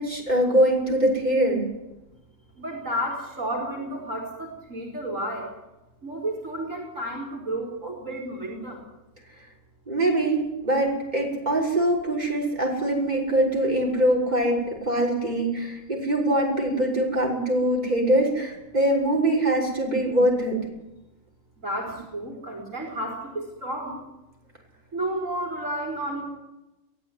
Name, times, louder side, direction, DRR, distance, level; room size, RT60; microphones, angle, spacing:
voice 1, 0.0-1.6 9.9-20.6, right 1 dB, 30° right, -2 dB, 6.5 m, -23 dB
voice 2, 2.6-5.5 6.0-8.8 21.6-24.0 24.9-26.2, right 1 dB, 60° right, 0 dB, 4.6 m, -31 dB
23.0 x 16.0 x 9.8 m, 0.96 s
omnidirectional pair, 1.5 m